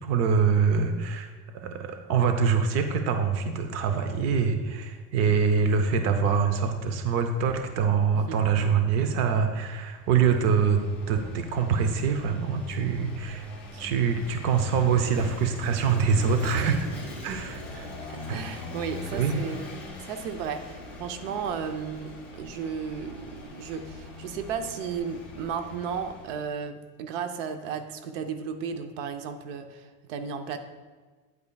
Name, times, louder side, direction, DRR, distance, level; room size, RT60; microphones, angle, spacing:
voice 1, 0.0-10.8 11.1-13.5 13.8-16.8 17.2-17.9 18.3-18.4 19.1-19.4, right 6 dB, 45° right, 7 dB, 0.6 m, -25 dB
voice 2, 8.1-8.6 13.7-13.8 16.5-16.8 18.1-30.6, right 6 dB, 75° right, 8 dB, 0.8 m, -34 dB
Vehicle / Engine, 9.9-26.5, left 2 dB, 5° left, 1.4 m, -41 dB
9.3 x 8.5 x 2.3 m, 1.4 s
cardioid pair, 165°, 38 cm